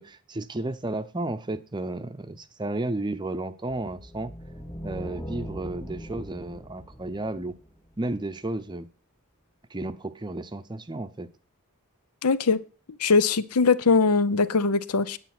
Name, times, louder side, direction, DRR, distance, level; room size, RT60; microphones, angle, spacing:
voice 1, 0.0-4.3 4.8-7.5 8.0-8.9 9.7-11.3, right 2 dB, 20° right, 11 dB, 0.6 m, -33 dB
sound 1, 3.8-8.1, equal, 20° left, 2.0 m, -40 dB
voice 2, 12.2-12.6 13.0-15.2, left 4 dB, 90° left, 17 dB, 0.7 m, -21 dB
9.5 x 8.8 x 5.9 m, 0.37 s
head